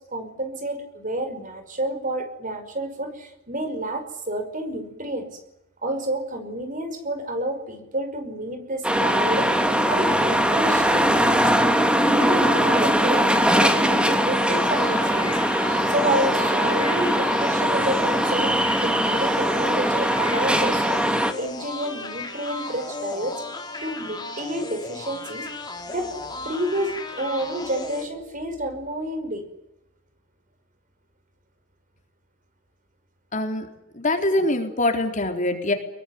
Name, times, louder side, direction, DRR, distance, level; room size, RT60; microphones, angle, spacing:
voice 1, 0.0-5.4 5.8-9.5 9.9-11.4 11.9-15.6 15.9-23.4 23.8-25.6 25.9-26.1 26.4-29.5, right 1 dB, 45° right, 8 dB, 5.4 m, -29 dB
sound 1, 8.8-21.3, equal, 5° right, 2.4 m, -21 dB
sound 2, 14.3-28.0, left 3 dB, 20° left, 4.6 m, -35 dB
voice 2, 33.3-33.7 33.9-35.7, left 1 dB, 40° left, 4 dB, 4.1 m, -23 dB
25.5 x 22.5 x 9.7 m, 0.87 s
head